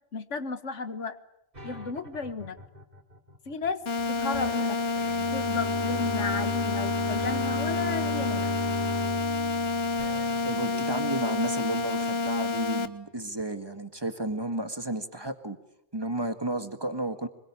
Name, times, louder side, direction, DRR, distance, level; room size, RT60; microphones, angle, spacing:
voice 1, 0.1-1.2 1.6-2.6 3.5-3.8 4.1-4.8 5.3-8.5, left 4 dB, 80° left, 12 dB, 1.9 m, -33 dB
sound 1, 1.5-11.1, right 1 dB, 35° right, 3.3 m, -46 dB
sound 2, 3.9-12.9, left 3 dB, 60° left, 1.6 m, -29 dB
Bowed string instrument, 4.9-10.9, left 1 dB, 40° left, 2.2 m, -36 dB
voice 2, 10.4-15.6 15.9-17.3, right 1 dB, 20° right, 9 dB, 1.9 m, -32 dB
25.5 x 23.0 x 10.0 m, 0.80 s
omnidirectional pair, 1.2 m